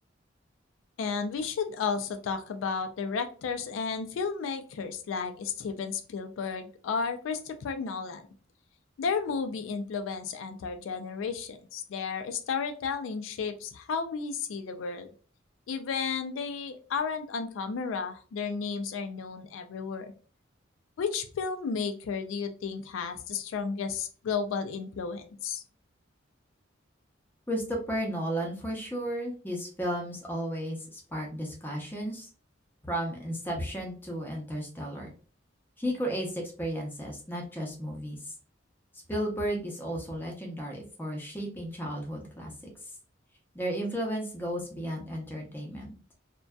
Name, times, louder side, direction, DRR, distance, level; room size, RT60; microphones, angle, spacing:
voice 1, 1.0-8.3 9.0-15.1 15.7-20.1 21.0-25.6, left 5 dB, 85° left, 7 dB, 0.3 m, -33 dB
voice 2, 27.5-32.3 32.8-35.1 35.8-38.3 39.1-42.5 43.5-46.0, equal, 10° left, -1 dB, 0.6 m, -34 dB
2.6 x 2.1 x 2.2 m, 0.39 s
head